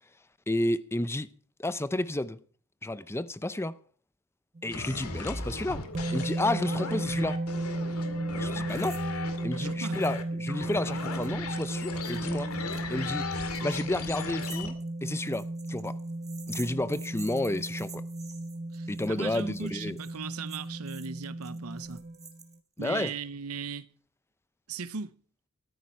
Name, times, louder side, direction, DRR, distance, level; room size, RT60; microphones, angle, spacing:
voice 1, 0.5-1.3 1.6-2.4 2.8-3.8 4.6-5.8 6.1-7.4 8.3-9.0 9.4-12.5 12.9-13.3 13.6-16.0 16.5-18.0 18.9-20.0 22.8-23.1, left 1 dB, 10° left, 0.6 m, -31 dB
sound 1, 4.6-22.4, right 1 dB, 30° right, 0.6 m, -35 dB
sound 2, 4.7-14.7, left 4 dB, 85° left, 2.2 m, -37 dB
sound 3, 8.7-9.0 9.3-9.4 9.9-10.2 10.5-22.9, right 5 dB, 15° right, 1.7 m, -50 dB
voice 2, 9.6-10.0 18.7-22.0 22.8-23.9 24.7-25.2, right 5 dB, 90° right, 0.8 m, -38 dB
14.0 x 14.0 x 4.5 m
head